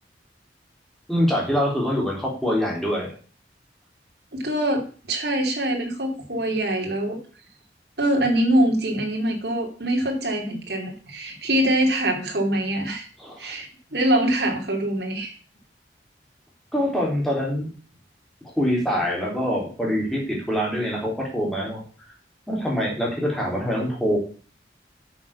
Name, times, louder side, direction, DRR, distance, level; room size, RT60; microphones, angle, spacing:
voice 1, 1.1-3.1 13.2-13.5 16.7-17.7 18.4-21.8 22.5-24.2, equal, ahead, -3 dB, 3.6 m, -24 dB
voice 2, 4.3-7.2 8.0-13.1 13.4-15.3, right 1 dB, 65° right, 2 dB, 2.9 m, -24 dB
9.6 x 6.4 x 7.1 m, 0.40 s
head